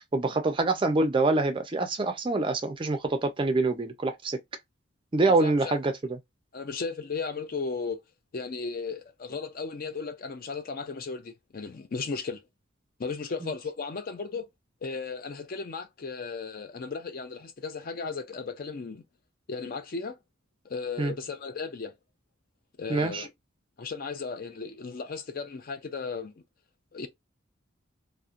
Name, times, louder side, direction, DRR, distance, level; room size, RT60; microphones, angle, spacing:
voice 1, 0.1-4.4 5.1-5.9 21.0-21.1 22.9-23.3, right 3 dB, 25° right, 0.4 m, -25 dB
voice 2, 5.2-5.8 6.5-8.0 8.3-12.4 13.0-14.5 14.8-19.0 19.5-20.2 20.6-21.9 22.8-23.3 23.8-26.3 26.9-27.1, left 4 dB, 45° left, 0.4 m, -35 dB
2.8 x 2.1 x 2.4 m
head